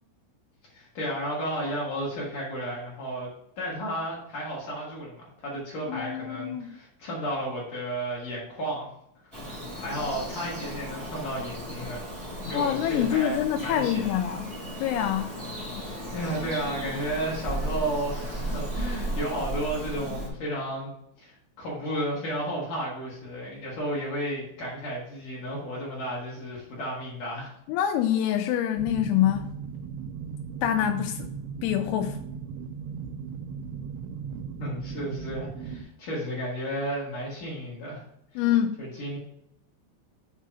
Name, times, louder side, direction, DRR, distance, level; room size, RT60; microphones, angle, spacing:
voice 1, 0.7-3.3 3.6-8.9 9.8-12.0 12.5-14.1 16.1-20.9 21.2-27.5 34.4-38.0 38.3-38.4 38.8-39.2, right 1 dB, 50° left, 2.8 m, -33 dB
voice 2, 5.9-6.7 12.5-14.5 14.8-15.3 27.7-29.5 30.6-31.3 31.6-32.2 38.4-38.8, left 10 dB, 85° left, 2.9 m, -25 dB
Bird vocalization bird call bird song, 9.3-20.3, right 1 dB, 35° right, 0.4 m, -35 dB
sound 1, 28.8-35.8, right 6 dB, 85° right, 2.8 m, -37 dB
7.6 x 3.4 x 5.5 m
omnidirectional pair, 5.6 m